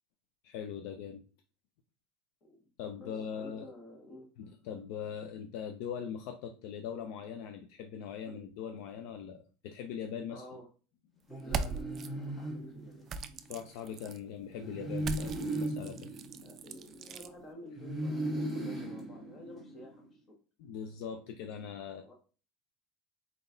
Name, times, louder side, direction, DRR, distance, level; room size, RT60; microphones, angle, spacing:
voice 1, 0.4-1.2 2.8-3.7 4.4-10.4 13.5-16.2 20.6-22.0, left 8 dB, 65° left, 6 dB, 0.4 m, -41 dB
voice 2, 3.0-4.3 8.2-8.5 10.3-10.7 11.4-13.1 16.4-20.3 22.0-22.1, left 1 dB, 35° left, 1 dB, 1.4 m, -51 dB
sound 1, 11.3-13.4 14.5-17.2 17.8-20.0, right 1 dB, 15° left, 1.4 m, -38 dB
sound 2, 11.4-12.1 13.1-14.2 15.0-17.3, right 6 dB, 35° right, 0.3 m, -39 dB
4.0 x 3.8 x 2.6 m, 0.36 s
supercardioid pair, 140°, 0 cm